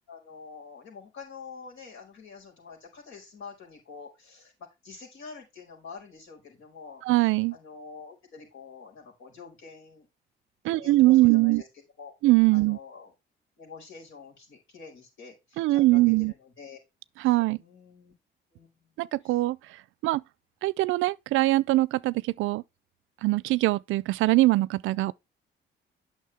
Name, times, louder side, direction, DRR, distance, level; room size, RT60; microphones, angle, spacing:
voice 1, 0.1-4.5 4.8-7.0 7.5-10.1 10.6-11.7 12.0-12.1 12.5-13.1 13.6-16.8 17.5-18.1 18.5-18.9 19.2-19.4, left 5 dB, 80° left, 5.0 m, -46 dB
voice 2, 7.0-7.6 10.6-11.6 12.2-12.8 15.6-16.3 17.2-17.6 19.0-19.6 20.0-20.2 20.6-22.6 23.2-25.1, right 19 dB, 85° right, 0.4 m, -22 dB
9.3 x 6.3 x 3.4 m
cardioid pair, 90°, 20 cm